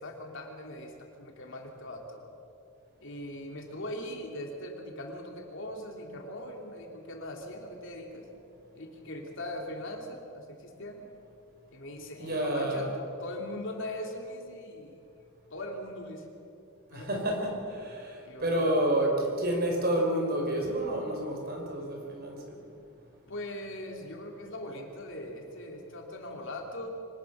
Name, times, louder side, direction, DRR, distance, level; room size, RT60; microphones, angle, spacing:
voice 1, 0.0-2.3 3.0-8.3 8.7-11.1 11.7-15.0 15.5-16.3 16.9-17.2 18.3-18.7 23.3-26.9, left 1 dB, 60° left, 2 dB, 3.2 m, -40 dB
voice 2, 12.2-12.9 16.9-22.6, right 1 dB, 45° right, 0 dB, 5.2 m, -29 dB
24.5 x 19.0 x 6.4 m, 2.7 s
head